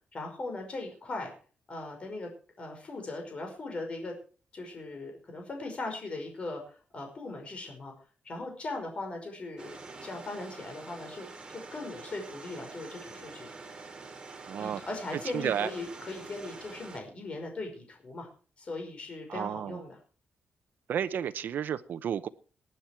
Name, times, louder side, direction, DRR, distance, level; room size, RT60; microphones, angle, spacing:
voice 1, 0.1-1.3 1.7-2.3 2.6-4.1 4.5-7.9 8.2-13.5 14.6-18.3 18.6-19.9, left 2 dB, 35° left, 3 dB, 5.4 m, -39 dB
sound 1, 9.6-17.0, right 3 dB, 25° right, 2.9 m, -46 dB
voice 2, 14.5-14.8 15.1-15.7 19.3-19.8 20.9-22.3, right 9 dB, 70° right, 11 dB, 0.9 m, -32 dB
19.0 x 10.0 x 4.6 m, 0.38 s
wide cardioid pair, 140°, 3 cm